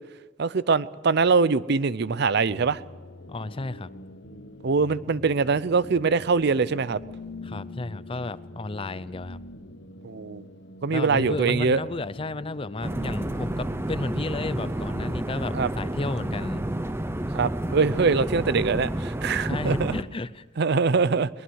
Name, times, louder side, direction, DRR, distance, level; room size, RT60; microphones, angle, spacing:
voice 1, 0.4-2.8 4.6-7.0 10.0-10.4 10.8-11.8 15.5-15.7 17.3-19.9 20.6-21.3, right 4 dB, 55° right, 18 dB, 0.5 m, -23 dB
sound 1, 2.5-15.2, left 2 dB, 60° left, 1.6 m, -44 dB
voice 2, 3.3-3.9 7.4-9.4 10.9-16.6 19.5-20.4, left 2 dB, 25° left, 16 dB, 0.6 m, -33 dB
sound 2, 12.8-20.0, right 1 dB, 10° right, 0.7 m, -30 dB
22.5 x 20.0 x 6.4 m, 1.3 s
head